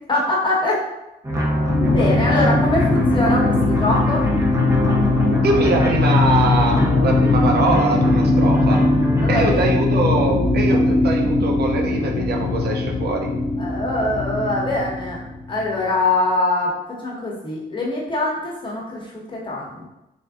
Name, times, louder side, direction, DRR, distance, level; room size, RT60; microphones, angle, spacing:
voice 1, 0.1-0.8 1.3-1.4 1.9-4.2 9.2-9.7 13.6-15.2 15.5-16.7 17.0-19.9, left 2 dB, 25° left, -3 dB, 1.2 m, -23 dB
sound 1, 1.2-9.5, equal, 15° right, 0.8 m, -23 dB
sound 2, 1.7-15.9, left 3 dB, 45° left, 0.5 m, -20 dB
voice 2, 5.4-8.8 9.3-13.3, right 3 dB, 60° right, 1 dB, 0.6 m, -23 dB
3.5 x 2.5 x 3.6 m, 0.93 s
cardioid pair, 85°, 18 cm